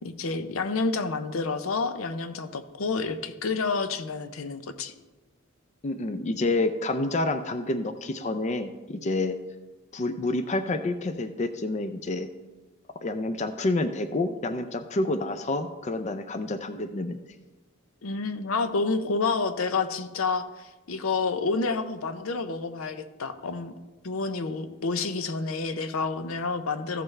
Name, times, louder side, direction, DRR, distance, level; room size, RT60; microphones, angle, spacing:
voice 1, 0.0-4.9 18.0-23.7 24.0-27.0, left 4 dB, 75° left, 10 dB, 0.6 m, -29 dB
voice 2, 5.8-9.4 9.9-12.3 13.0-17.2, left 2 dB, 35° left, 9 dB, 0.4 m, -28 dB
14.5 x 6.8 x 3.2 m, 1.2 s
head